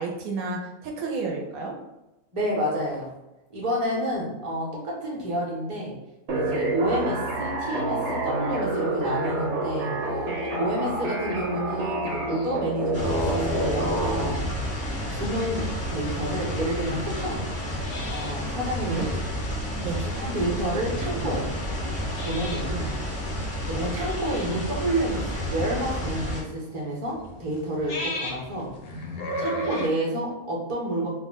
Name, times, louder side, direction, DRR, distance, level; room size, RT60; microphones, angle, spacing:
voice 1, 0.0-1.7 18.8-19.1 19.8-20.1, right 3 dB, 80° right, 1 dB, 1.0 m, -31 dB
voice 2, 2.3-3.1 3.5-5.9 6.3-10.2 10.5-14.5 15.1-17.4 18.1-19.1 20.0-21.5 22.2-22.9 23.6-29.0 29.4-31.1, right 1 dB, 30° right, -4 dB, 0.6 m, -29 dB
sound 1, 6.3-14.3, right 2 dB, 55° right, 1.0 m, -28 dB
sound 2, 12.9-26.4, equal, 15° left, 0.5 m, -31 dB
sound 3, 13.9-29.9, left 1 dB, 65° left, 0.6 m, -39 dB
2.6 x 2.1 x 3.4 m, 0.95 s
omnidirectional pair, 1.5 m